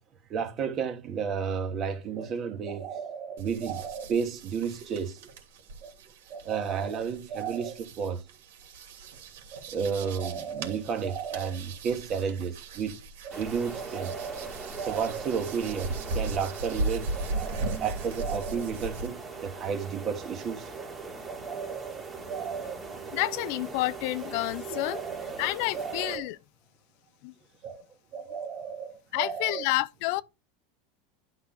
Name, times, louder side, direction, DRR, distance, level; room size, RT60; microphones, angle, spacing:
voice 1, 0.3-5.3 5.8-5.9 6.3-8.2 9.5-20.9 21.3-22.8 24.7-26.3 27.6-27.8 28.1-29.7, right 6 dB, 35° right, 2.0 m, -33 dB
sound 1, 3.4-19.1, right 3 dB, 80° right, 2.8 m, -38 dB
sound 2, 13.3-26.2, right 4 dB, 15° right, 2.6 m, -41 dB
voice 2, 23.1-25.1 25.4-26.4 27.2-27.3 29.1-30.2, left 18 dB, 60° left, 0.6 m, -29 dB
12.0 x 4.1 x 4.7 m
supercardioid pair, 135°, 0 cm